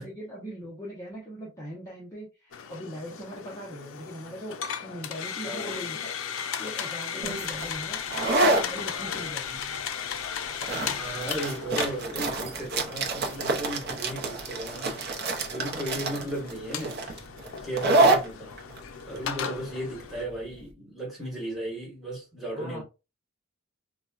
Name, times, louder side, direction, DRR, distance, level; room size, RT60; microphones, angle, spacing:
voice 1, 0.0-4.6 4.8-9.6 15.6-16.1 22.5-22.8, equal, 15° left, 0.8 m, -40 dB
sound 1, 2.5-20.3, left 7 dB, 75° left, 0.4 m, -36 dB
voice 2, 5.4-5.8 10.9-17.0 17.6-18.6 19.1-22.8, right 1 dB, ahead, 1.5 m, -35 dB
sound 2, 7.2-20.6, right 2 dB, 50° right, 0.6 m, -28 dB
4.0 x 2.2 x 2.4 m
head